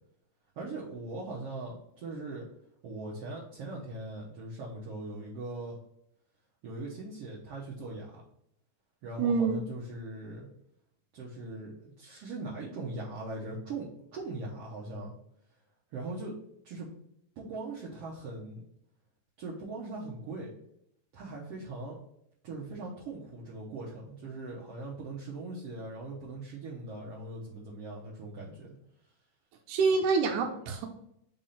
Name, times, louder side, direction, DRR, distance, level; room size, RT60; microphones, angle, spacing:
voice 1, 0.6-2.4 2.8-5.8 6.6-8.2 9.0-10.5 11.1-15.1 15.9-16.3 16.6-16.9 17.4-18.6 19.4-20.5 21.1-22.0 22.4-28.7, right 2 dB, 65° right, -6 dB, 1.7 m, -40 dB
voice 2, 9.2-9.6 29.7-30.9, right 4 dB, 80° right, 2 dB, 2.1 m, -26 dB
5.1 x 3.6 x 5.6 m, 0.76 s
omnidirectional pair, 3.6 m